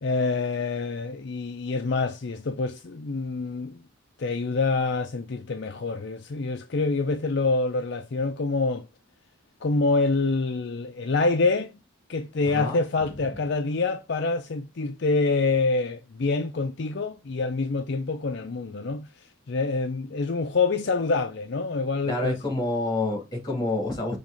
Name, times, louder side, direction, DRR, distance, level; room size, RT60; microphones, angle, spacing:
voice 1, 0.0-3.8 4.2-8.9 9.6-11.7 12.1-22.4, left 3 dB, 55° left, 0.5 m, -26 dB
voice 2, 12.5-12.8 22.1-24.2, left 2 dB, 20° left, 3.0 m, -28 dB
5.8 x 3.5 x 5.1 m
head